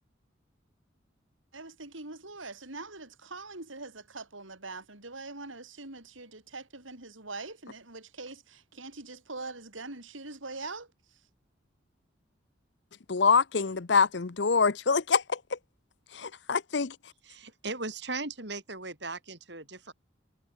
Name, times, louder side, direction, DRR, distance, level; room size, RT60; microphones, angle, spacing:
voice 1, 1.5-11.2, right 3 dB, 90° right, 6.5 m, -43 dB
voice 2, 13.1-15.6 16.1-16.9, left 5 dB, 65° left, 0.8 m, -25 dB
voice 3, 17.2-19.9, right 3 dB, 65° right, 6.4 m, -38 dB
head